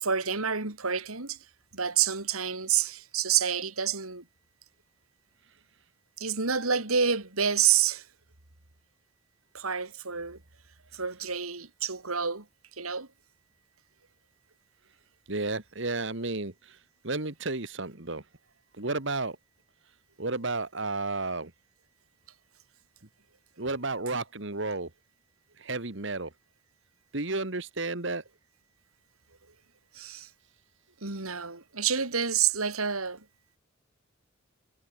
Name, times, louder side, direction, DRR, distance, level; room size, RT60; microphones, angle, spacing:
voice 1, 0.0-1.4 1.7-4.2 6.2-8.0 9.5-10.4 10.9-12.5 12.8-13.1 29.9-30.3 31.0-33.2, right 7 dB, 90° right, 3.6 m, -28 dB
voice 2, 15.3-16.8 17.0-18.2 18.8-19.4 20.2-21.5 23.6-24.9 25.6-26.3 27.1-28.2, right 3 dB, 60° right, 1.8 m, -32 dB
head